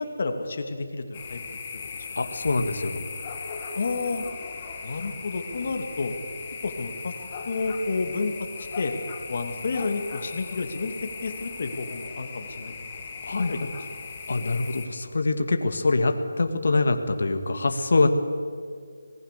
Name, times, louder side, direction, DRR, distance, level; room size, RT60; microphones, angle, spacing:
voice 1, 0.0-1.4 3.7-4.2 4.8-6.1 6.6-7.1 7.5-8.3 8.8-8.9 9.3-10.9 11.2-12.7 13.3-13.7, left 3 dB, 45° left, 5 dB, 2.6 m, -30 dB
sound 1, 1.1-14.9, left 5 dB, 25° left, 2.2 m, -38 dB
voice 2, 2.2-3.1 13.2-13.7 14.3-18.1, left 3 dB, 60° left, 6 dB, 2.1 m, -24 dB
25.5 x 19.5 x 6.9 m, 2.2 s
figure-of-eight pair, 170°, 0 cm